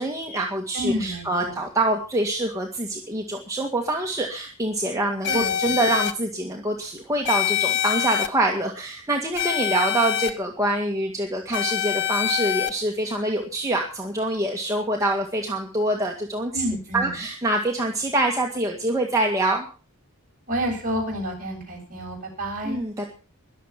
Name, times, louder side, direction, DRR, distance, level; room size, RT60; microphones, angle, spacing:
voice 1, 0.0-16.6 16.9-19.7 22.6-23.1, right 1 dB, 15° right, 1 dB, 2.0 m, -25 dB
voice 2, 0.7-1.6 5.3-5.7 16.5-17.2 20.5-22.8, equal, 40° right, 0 dB, 7.9 m, -29 dB
sound 1, 5.2-6.1 7.2-8.3 9.4-10.3 11.5-12.7, left 10 dB, 55° left, 1.5 m, -25 dB
22.0 x 7.6 x 6.0 m, 0.36 s
head